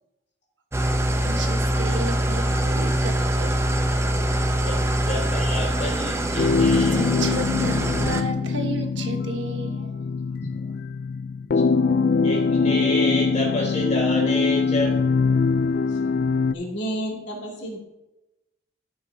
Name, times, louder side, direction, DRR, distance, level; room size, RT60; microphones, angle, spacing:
Engine starting / Idling, 0.7-8.2, right 1 dB, 15° right, 0.6 m, -24 dB
voice 1, 0.8-3.7 6.5-10.0 10.5-10.7, right 2 dB, 85° right, 5 dB, 1.2 m, -33 dB
voice 2, 4.6-7.0 11.5-11.6 12.2-15.0, left 1 dB, 40° left, -5 dB, 3.3 m, -29 dB
sound 1, 6.4-16.5, left 4 dB, 55° left, 0.3 m, -23 dB
voice 3, 16.5-17.8, right 1 dB, 75° left, -2 dB, 2.5 m, -30 dB
15.5 x 6.2 x 2.7 m, 0.98 s
head